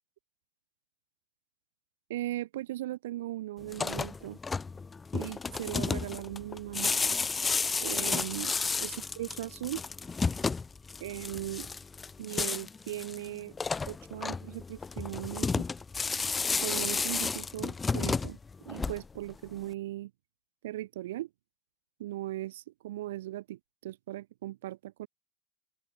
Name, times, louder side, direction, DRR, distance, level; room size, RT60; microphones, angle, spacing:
voice 1, 2.1-4.4 5.1-6.9 7.8-9.8 11.0-11.7 12.2-13.6 13.9-15.7 16.6-18.4 18.7-20.1 20.6-21.3 22.0-25.1, right 15 dB, 75° right, 2.5 m, -38 dB
sound 1, 3.6-19.3, left 4 dB, 20° left, 1.2 m, -32 dB
open air
hypercardioid pair, 85°, 0 cm